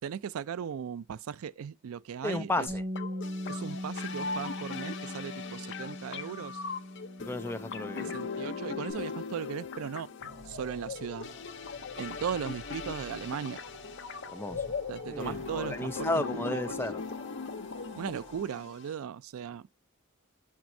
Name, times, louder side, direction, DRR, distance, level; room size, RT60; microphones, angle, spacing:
voice 1, 0.0-2.7 3.5-6.6 8.1-10.1 10.5-11.3 12.0-13.6 14.9-16.6 17.9-19.6, right 7 dB, 80° right, 0.4 m, -37 dB
voice 2, 2.2-2.8 7.2-8.2 14.3-14.6 15.1-17.0, left 2 dB, 10° left, 0.5 m, -33 dB
Bass guitar, 2.7-8.9, left 1 dB, 20° right, 3.3 m, -40 dB
sound 1, 3.0-18.9, left 5 dB, 55° left, 0.6 m, -39 dB
sound 2, 10.2-18.4, right 3 dB, 55° right, 2.7 m, -50 dB
6.2 x 6.1 x 2.6 m
head